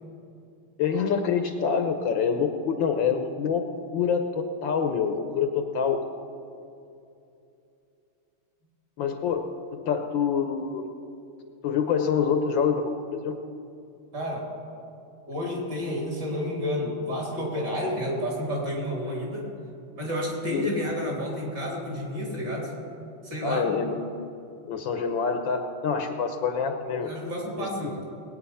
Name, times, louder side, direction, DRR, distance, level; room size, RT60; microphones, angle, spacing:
voice 1, 0.8-3.6 3.9-6.0 9.0-9.4 9.7-10.9 11.6-13.4 20.5-20.7 23.4-24.0 24.7-27.1 27.6-27.9, left 6 dB, 65° left, 6 dB, 1.4 m, -26 dB
voice 2, 14.1-14.5 15.3-19.5 20.0-22.7 23.2-23.7 27.0-28.1, equal, 50° right, -2 dB, 4.0 m, -30 dB
20.0 x 9.2 x 5.6 m, 2.6 s
omnidirectional pair, 2.4 m